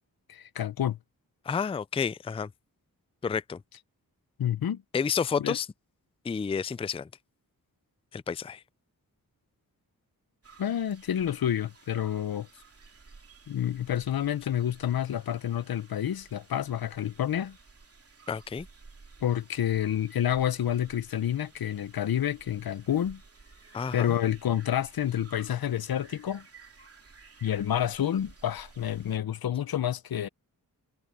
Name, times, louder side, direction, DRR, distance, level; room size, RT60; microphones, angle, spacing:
voice 1, 0.3-1.0 4.4-4.8 5.4-5.6 10.6-12.5 13.5-17.6 19.2-23.2 23.9-26.4 27.4-30.3, left 10 dB, 80° left, 0.7 m, -29 dB
voice 2, 1.5-2.5 3.2-3.6 4.9-5.7 6.2-7.1 8.1-8.6 18.3-18.7 23.7-24.2, left 6 dB, 15° left, 0.3 m, -30 dB
sound 1, 10.4-29.2, right 4 dB, 40° right, 2.8 m, -55 dB
wide cardioid pair, 95°, 36 cm